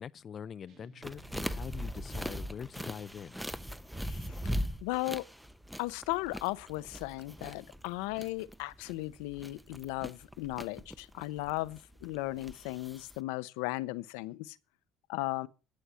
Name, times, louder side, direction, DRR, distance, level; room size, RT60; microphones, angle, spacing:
voice 1, 0.0-3.4, left 7 dB, 45° left, 0.6 m, -43 dB
sound 1, 0.7-3.2, right 4 dB, 60° right, 2.8 m, -61 dB
sound 2, 1.0-13.2, equal, 5° right, 1.0 m, -40 dB
voice 2, 4.8-5.2 5.8-14.6 15.1-15.5, left 19 dB, 85° left, 0.9 m, -36 dB
11.5 x 8.0 x 7.6 m
supercardioid pair, 80°, 0 cm